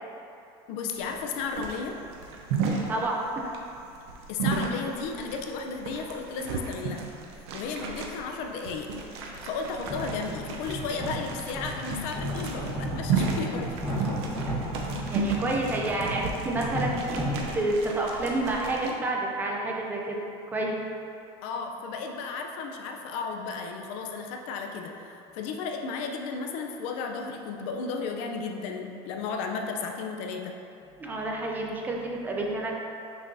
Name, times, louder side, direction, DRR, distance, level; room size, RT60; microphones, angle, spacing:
voice 1, 0.7-2.0 4.3-7.1 7.3-8.9 9.2-14.3 21.4-30.6, left 4 dB, 55° left, 3 dB, 0.6 m, -34 dB
sound 1, 1.0-18.9, right 4 dB, 85° right, 0.8 m, -34 dB
voice 2, 2.9-3.5 15.1-20.2 20.5-20.8 31.0-32.8, right 2 dB, 15° right, -1 dB, 0.5 m, -29 dB
sound 2, 9.9-17.5, equal, 5° left, 1.3 m, -34 dB
6.3 x 5.7 x 2.7 m, 2.6 s
cardioid pair, 170°, 13 cm